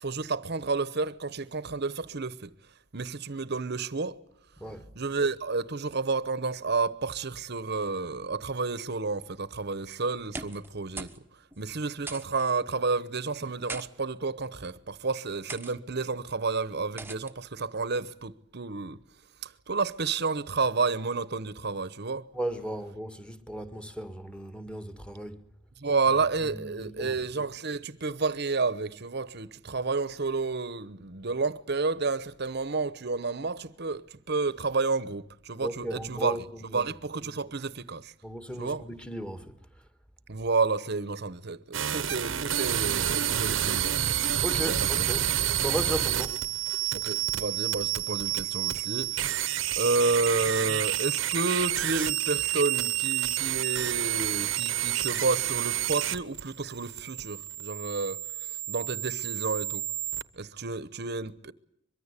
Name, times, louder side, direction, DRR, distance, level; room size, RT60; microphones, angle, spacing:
voice 1, 0.0-2.5 2.9-4.2 4.9-11.1 11.6-19.0 19.4-22.3 25.8-36.4 36.7-38.1 38.6-38.8 40.3-44.2 44.6-45.1 46.9-59.8 60.3-61.5, right 4 dB, 60° right, 1.0 m, -30 dB
voice 2, 4.6-4.9 22.3-25.4 26.4-27.2 35.6-36.9 38.2-39.6 44.4-45.3 45.6-46.4, right 1 dB, 5° left, 1.9 m, -36 dB
sound 1, 10.2-10.7 11.0-11.2 11.5-11.6 12.1-12.5 13.4-13.9 14.6-14.9 15.5-15.7 17.0-17.3, right 3 dB, 10° right, 1.2 m, -40 dB
sound 2, 41.7-60.2, right 11 dB, 80° right, 1.0 m, -29 dB
24.0 x 23.0 x 8.3 m
head